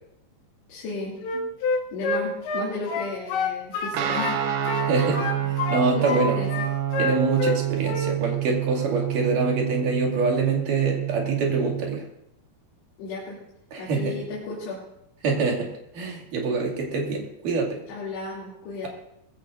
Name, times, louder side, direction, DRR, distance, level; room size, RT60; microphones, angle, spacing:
voice 1, 0.7-1.5 1.9-4.4 4.7-5.3 5.9-6.7 13.0-13.4 13.8-14.8 17.9-18.9, left 3 dB, 75° left, -7 dB, 5.0 m, -34 dB
Wind instrument woodwind instrument, 1.2-4.4 4.7-6.2 6.5-7.6 7.9-8.1, left 3 dB, 90° left, 3.6 m, -27 dB
Guitar, 3.9-12.0, right 12 dB, 70° right, 2.7 m, -28 dB
voice 2, 5.7-6.3 7.0-12.0 13.7-14.1 15.2-17.8, right 3 dB, 55° right, 0 dB, 3.7 m, -25 dB
20.5 x 16.0 x 2.6 m, 0.79 s
omnidirectional pair, 5.0 m